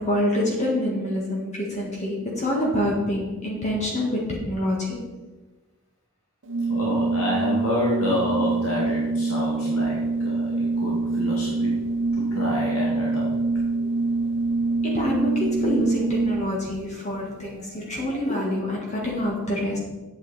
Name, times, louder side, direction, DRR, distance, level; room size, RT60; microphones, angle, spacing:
voice 1, 0.0-5.0 14.8-19.8, left 1 dB, 35° left, -3 dB, 1.7 m, -26 dB
Organ, 6.5-16.7, right 3 dB, 60° right, 0.8 m, -25 dB
voice 2, 6.7-11.7 12.2-13.3, left 1 dB, 75° left, -4 dB, 2.0 m, -28 dB
8.7 x 8.5 x 4.1 m, 1.2 s
head